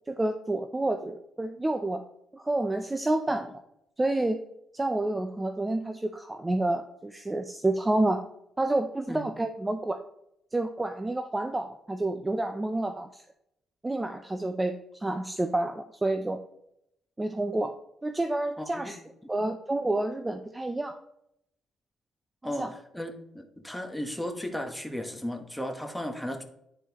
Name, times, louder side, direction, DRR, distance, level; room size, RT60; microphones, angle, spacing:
voice 1, 0.1-2.0 2.3-3.5 4.0-4.4 4.7-8.3 8.6-10.0 10.5-13.2 13.8-16.4 17.2-17.7 18.0-19.0 19.3-20.9 22.4-22.7, right 2 dB, 15° right, 7 dB, 0.4 m, -29 dB
voice 2, 18.6-18.9 22.4-22.7 22.9-26.4, equal, 5° left, 5 dB, 1.0 m, -35 dB
10.0 x 4.4 x 2.9 m, 0.78 s
cardioid pair, 90°, 0 cm